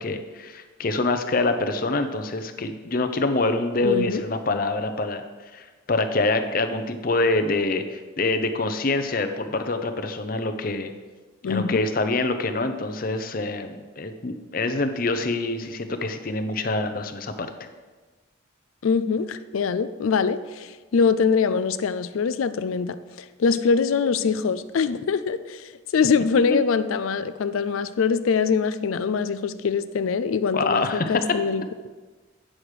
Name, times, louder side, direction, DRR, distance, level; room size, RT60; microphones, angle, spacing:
voice 1, 0.0-5.2 5.5-10.9 11.5-17.5 30.5-31.1, left 2 dB, 45° left, 8 dB, 0.7 m, -25 dB
voice 2, 3.8-4.2 11.4-11.8 18.8-31.9, left 5 dB, 90° left, 13 dB, 0.4 m, -23 dB
8.9 x 6.3 x 4.9 m, 1.3 s
head